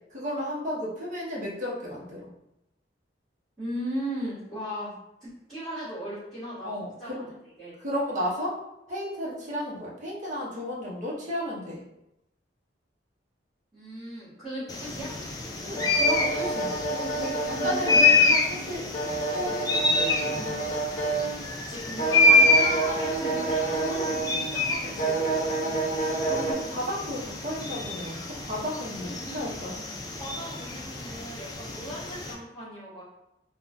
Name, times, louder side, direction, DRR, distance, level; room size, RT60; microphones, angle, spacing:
voice 1, 0.1-2.3 6.6-7.3 7.8-11.8 15.6-20.8 25.9-29.8, left 1 dB, 45° right, -6 dB, 0.8 m, -34 dB
voice 2, 3.6-4.9 5.2-6.7 7.0-7.2 7.6-7.8 13.7-15.1 17.4-18.1 21.7-25.3 29.0-29.7 30.1-33.0, equal, ahead, -18 dB, 1.4 m, -37 dB
sound 1, 14.7-32.3, left 2 dB, 20° left, 0.3 m, -27 dB
sound 2, 15.8-21.6 22.0-24.6 25.0-26.5, right 3 dB, 45° left, 0.7 m, -29 dB
3.6 x 2.2 x 2.5 m, 0.86 s
head